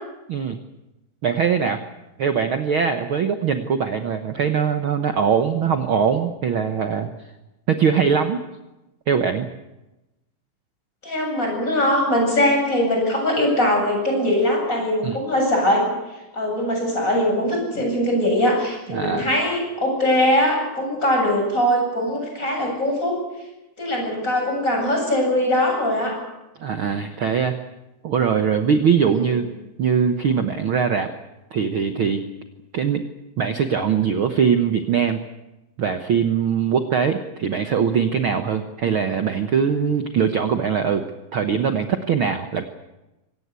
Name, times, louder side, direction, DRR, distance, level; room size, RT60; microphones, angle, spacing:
voice 1, 1.2-1.8 2.2-7.1 7.7-8.4 9.1-9.5 15.0-15.2 18.9-19.3 26.6-27.6 28.0-29.5 29.8-31.1 31.5-32.2 32.7-33.0 33.4-35.2 35.8-41.1 41.3-42.6, right 7 dB, 90° right, 7 dB, 1.1 m, -21 dB
voice 2, 11.0-15.9 16.3-23.2 23.8-26.2 29.1-29.3, left 1 dB, 20° left, 1 dB, 8.4 m, -21 dB
25.0 x 18.0 x 8.3 m, 1.0 s
omnidirectional pair, 4.1 m